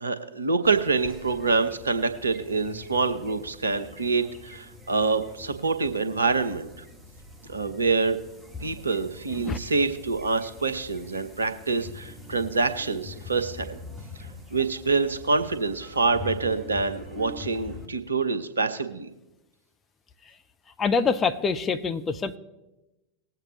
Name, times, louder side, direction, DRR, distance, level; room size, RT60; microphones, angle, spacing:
voice 1, 0.0-6.7 7.5-8.2 8.6-13.8 14.5-19.1, right 4 dB, 75° right, 9 dB, 0.9 m, -26 dB
sound 1, 0.6-17.9, left 3 dB, 5° right, 1.7 m, -44 dB
voice 2, 20.8-22.4, left 5 dB, 20° left, 9 dB, 0.6 m, -25 dB
20.0 x 7.9 x 3.1 m, 0.99 s
figure-of-eight pair, 90°, 0 cm